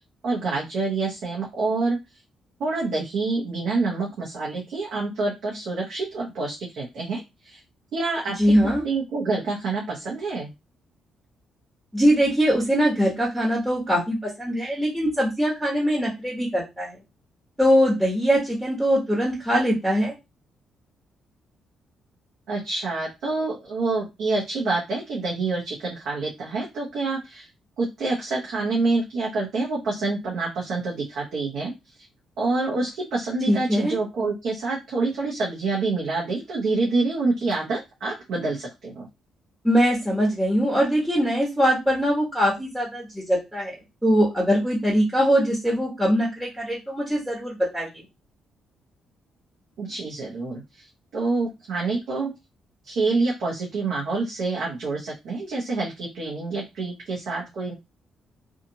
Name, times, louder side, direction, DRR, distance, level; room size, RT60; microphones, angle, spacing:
voice 1, 0.2-2.0 2.6-7.6 7.9-8.5 8.8-10.5 22.5-27.5 27.8-31.7 32.4-39.1 49.8-50.9 51.1-52.3 52.9-57.7, right 3 dB, 70° right, -4 dB, 0.9 m, -27 dB
voice 2, 8.4-8.8 11.9-17.0 17.6-20.1 33.5-34.0 39.6-43.7 44.0-48.0, equal, 5° right, -5 dB, 1.3 m, -22 dB
2.7 x 2.4 x 2.8 m, 0.23 s
cardioid pair, 90°, 0 cm